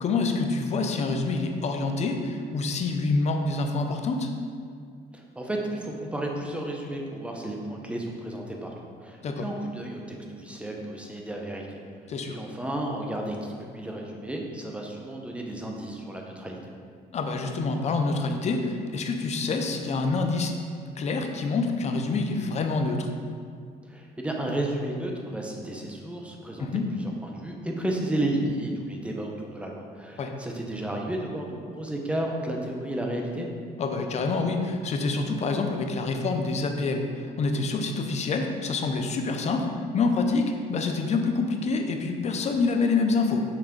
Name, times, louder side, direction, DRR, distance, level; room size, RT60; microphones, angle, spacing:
voice 1, 0.0-4.3 9.2-9.5 12.1-12.4 17.1-20.5 21.0-23.1 26.6-26.9 30.2-30.3 33.8-43.4, left 3 dB, 40° left, 4 dB, 0.6 m, -27 dB
voice 2, 5.1-8.7 9.0-11.8 12.3-16.6 23.8-26.7 26.9-33.5, right 1 dB, 5° right, 0 dB, 0.8 m, -32 dB
5.8 x 3.5 x 5.0 m, 2.1 s
cardioid pair, 110°, 17 cm